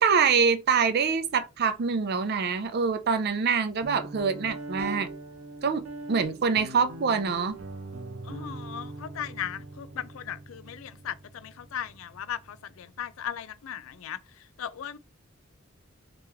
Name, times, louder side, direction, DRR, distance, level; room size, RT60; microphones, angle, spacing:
voice 1, 0.0-5.1 5.6-5.8 6.1-7.5, right 5 dB, 50° right, 0.5 m, -25 dB
Guitar, 3.8-13.3, right 2 dB, 90° right, 0.8 m, -42 dB
voice 2, 8.3-14.2 14.6-15.0, left 9 dB, 80° left, 0.4 m, -37 dB
3.0 x 3.0 x 3.5 m
head